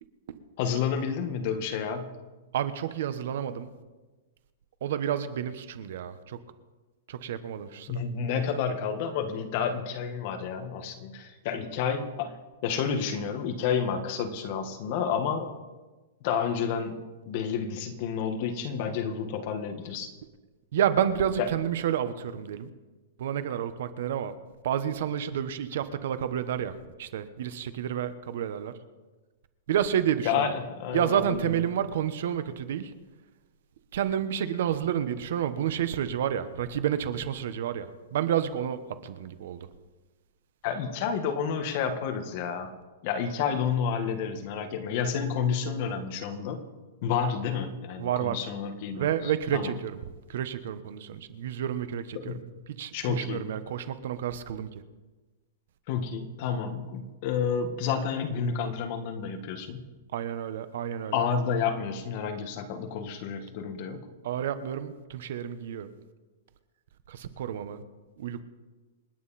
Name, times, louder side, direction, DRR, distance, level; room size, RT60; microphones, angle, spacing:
voice 1, 0.6-2.1 7.9-12.4 12.6-15.5 16.2-20.1 21.4-21.5 30.2-31.5 40.6-42.7 43.0-46.6 47.0-49.7 52.2-52.4 52.9-53.4 55.9-59.8 61.1-64.1, left 7 dB, 35° left, 6 dB, 1.7 m, -30 dB
voice 2, 2.5-3.7 4.8-6.4 7.1-8.0 20.7-22.7 23.2-24.4 24.6-28.7 29.7-30.5 30.9-32.9 33.9-39.7 48.0-48.4 48.9-50.0 50.3-52.4 52.7-54.7 60.1-61.3 64.2-65.9 67.1-67.8 68.2-68.5, right 9 dB, 55° right, 11 dB, 1.2 m, -30 dB
28.0 x 9.6 x 4.3 m, 1.2 s
supercardioid pair, 170°, 0 cm